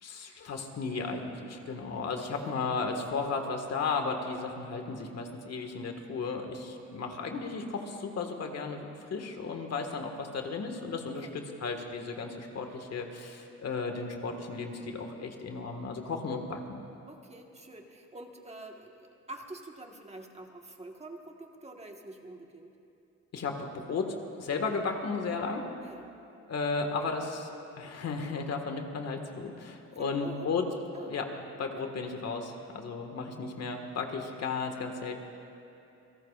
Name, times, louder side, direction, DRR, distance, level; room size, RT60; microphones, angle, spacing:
voice 1, 0.0-16.8 23.3-25.7 26.5-30.6 30.9-31.3 31.6-35.2, left 4 dB, 55° left, 4 dB, 1.8 m, -34 dB
voice 2, 17.1-22.7 25.8-26.1 29.9-30.5 30.9-31.1 31.6-31.7, right 2 dB, 20° right, 2 dB, 1.5 m, -46 dB
28.0 x 17.5 x 2.5 m, 2.8 s
cardioid pair, 90°, 30 cm